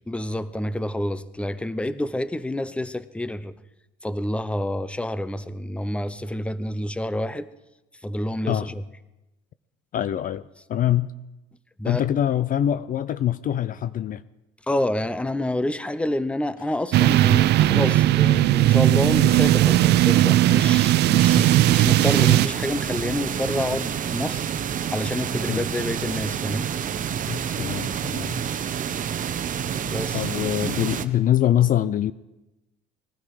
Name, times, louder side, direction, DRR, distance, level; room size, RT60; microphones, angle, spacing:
voice 1, 0.1-3.6 4.0-7.5 8.0-8.8 11.8-12.0 14.7-24.4 24.7-26.7 29.8-30.3, left 1 dB, 5° left, 14 dB, 0.7 m, -28 dB
voice 2, 9.9-11.1 11.8-14.2 21.4-21.6 25.5-25.6 27.3-28.4 30.1-32.1, left 11 dB, 45° left, 15 dB, 0.5 m, -24 dB
sound 1, 16.9-22.5, right 14 dB, 60° right, 0.5 m, -17 dB
sound 2, 21.2-31.1, right 8 dB, 40° right, 1.0 m, -28 dB
20.5 x 12.5 x 4.9 m, 0.98 s
supercardioid pair, 85°, 20 cm